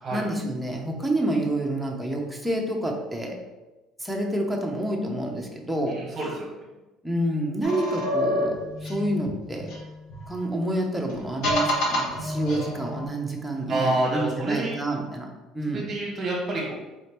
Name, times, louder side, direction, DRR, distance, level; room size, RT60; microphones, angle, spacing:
voice 1, 0.1-3.4 4.0-6.0 7.0-9.7 10.3-15.3 15.5-15.9, right 1 dB, ahead, -1 dB, 0.7 m, -28 dB
voice 2, 5.9-6.5 13.7-14.7 15.7-16.7, right 2 dB, 30° right, -4 dB, 0.9 m, -28 dB
sound 1, 7.6-10.4 11.1-13.1, left 1 dB, 70° left, 1.2 m, -28 dB
4.2 x 2.7 x 3.3 m, 1.1 s
cardioid pair, 115°, 0 cm